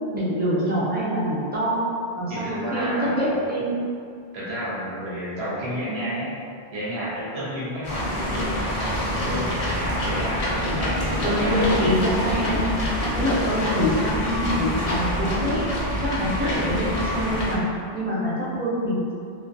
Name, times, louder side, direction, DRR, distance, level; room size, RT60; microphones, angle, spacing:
voice 1, 0.1-1.8 2.2-3.8 11.2-15.7 16.0-17.6 17.9-19.2, equal, 15° right, -9 dB, 0.3 m, -25 dB
voice 2, 2.3-3.2 4.3-6.4 6.7-11.9 12.3-12.6 15.0-15.2 16.4-16.6, equal, 80° right, -8 dB, 1.1 m, -31 dB
sound 1, 7.8-17.6, left 1 dB, 55° left, 0.4 m, -26 dB
2.5 x 2.4 x 2.6 m, 2.3 s
omnidirectional pair, 1.1 m